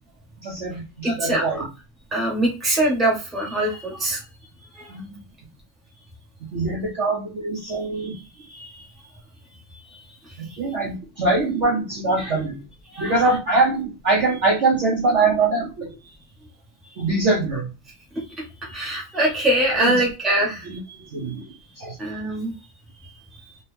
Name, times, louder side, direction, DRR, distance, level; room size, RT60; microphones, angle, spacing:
voice 1, 0.4-1.7 4.9-5.1 6.5-8.1 10.4-12.6 13.0-15.9 17.0-17.7 19.8-20.0 20.4-20.8 21.1-21.4 21.8-22.0, right 3 dB, 50° right, -2 dB, 0.9 m, -23 dB
voice 2, 1.0-1.6 2.1-4.2 4.8-4.9 7.7-8.1 8.4-8.8 9.9-10.6 12.2-12.3 12.9-13.2 18.6-20.7 22.0-22.5 23.0-23.6, right 1 dB, ahead, -3 dB, 1.0 m, -24 dB
3.3 x 2.9 x 3.3 m, 0.30 s
omnidirectional pair, 2.1 m